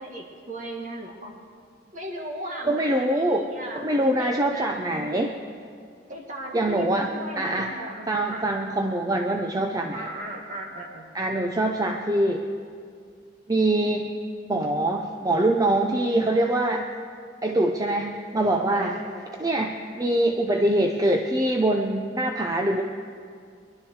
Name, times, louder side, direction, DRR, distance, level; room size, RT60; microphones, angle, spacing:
voice 1, 0.0-1.4 1.9-5.2 6.1-8.5 9.9-11.0 18.7-19.2, right 1 dB, 45° right, 0 dB, 2.1 m, -37 dB
voice 2, 2.7-3.5 3.7-5.4 6.5-7.1 7.4-7.7 8.1-10.1 11.1-12.4 13.5-14.1 14.5-16.9 17.4-19.0 19.4-22.8, right 1 dB, 20° right, 3 dB, 0.6 m, -24 dB
23.0 x 12.0 x 4.7 m, 2.2 s
head